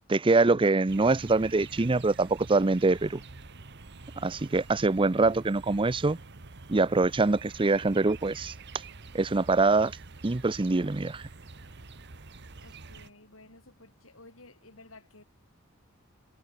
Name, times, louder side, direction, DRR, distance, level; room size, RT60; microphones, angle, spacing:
voice 1, 0.1-3.2 4.2-6.2 6.7-8.5 9.1-9.9 10.2-11.2, right 3 dB, 25° right, 0.6 m, -24 dB
sound 1, 0.9-13.1, right 3 dB, 55° right, 1.4 m, -47 dB
voice 2, 12.4-15.2, left 2 dB, 80° left, 7.7 m, -54 dB
head